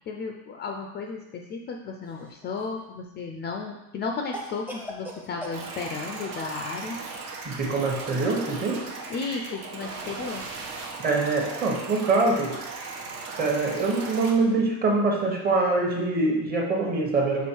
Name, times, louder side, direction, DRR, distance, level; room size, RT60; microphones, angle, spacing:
voice 1, 0.1-7.0 9.1-10.4, left 4 dB, 30° left, 2 dB, 0.4 m, -34 dB
Cough, 2.0-2.8 4.3-5.6, left 1 dB, 5° right, 0.6 m, -39 dB
sound 1, 5.5-14.3, right 4 dB, 70° right, 1.1 m, -37 dB
voice 2, 7.4-8.8 11.0-12.6 13.4-17.5, right 3 dB, 25° right, 0 dB, 1.0 m, -24 dB
6.2 x 3.5 x 4.5 m, 0.92 s
cardioid pair, 160°, 35 cm